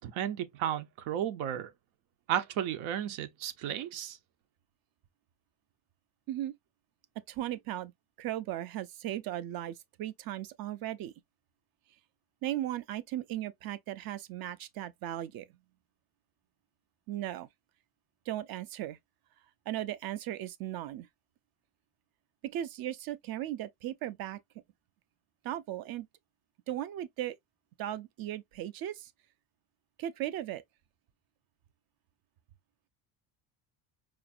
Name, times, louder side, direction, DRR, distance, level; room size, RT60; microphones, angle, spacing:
voice 1, 0.0-1.7 2.3-4.2, right 10 dB, 90° right, 0.9 m, -33 dB
voice 2, 7.3-7.9 8.2-11.1 12.4-15.5 17.1-17.5 18.3-19.0 19.7-21.1 22.4-24.4 25.4-26.1 26.7-27.4 27.8-29.1 30.0-30.6, right 13 dB, 50° right, 0.5 m, -37 dB
4.9 x 2.5 x 2.5 m
cardioid pair, 175°, 48 cm